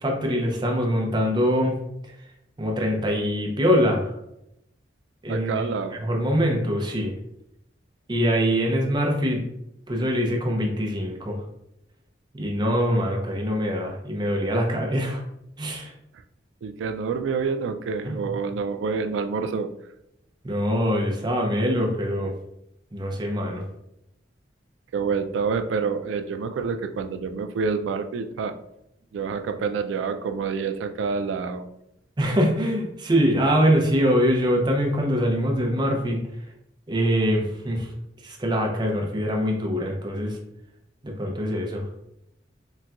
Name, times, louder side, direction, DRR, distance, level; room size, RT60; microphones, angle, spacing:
voice 1, 0.0-1.8 2.6-4.1 5.2-5.6 6.0-7.1 8.1-9.5 9.9-11.4 12.3-15.2 15.6-15.9 18.0-18.2 20.4-22.3 22.9-23.6 32.2-36.2 36.9-37.9 38.2-40.4 41.0-41.8, equal, 25° right, 1 dB, 0.5 m, -23 dB
voice 2, 5.3-6.0 16.6-19.7 24.9-28.5 29.1-31.6, right 5 dB, 85° right, 8 dB, 0.3 m, -27 dB
4.0 x 2.2 x 2.3 m, 0.81 s
head